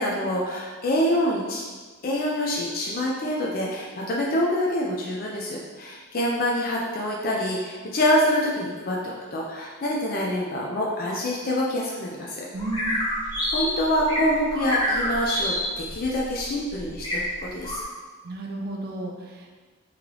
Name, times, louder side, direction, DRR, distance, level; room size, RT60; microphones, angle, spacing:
voice 1, 0.0-1.6 2.0-12.4 13.5-17.8, left 1 dB, 40° left, -3 dB, 0.4 m, -26 dB
voice 2, 12.5-13.0 18.2-19.5, right 2 dB, 45° right, 1 dB, 0.5 m, -32 dB
sound 1, 12.6-17.8, left 1 dB, 20° left, 0.8 m, -28 dB
3.1 x 2.9 x 3.7 m, 1.4 s
head